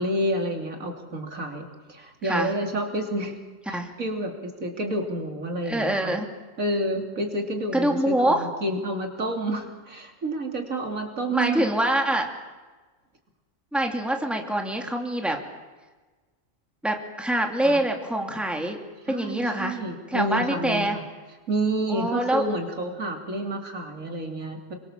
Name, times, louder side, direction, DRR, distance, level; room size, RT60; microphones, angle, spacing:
voice 1, 0.0-3.4 3.7-6.1 6.6-11.7 17.6-17.8 19.1-21.0 21.5-24.7, right 1 dB, 80° right, 3 dB, 3.5 m, -29 dB
voice 2, 5.6-6.3 7.7-8.5 11.3-12.3 13.7-15.4 16.8-18.8 19.1-19.8 20.1-21.0 21.9-22.4 23.0-23.2, right 1 dB, ahead, 3 dB, 2.7 m, -25 dB
27.5 x 23.5 x 7.4 m, 1.3 s
omnidirectional pair, 1.4 m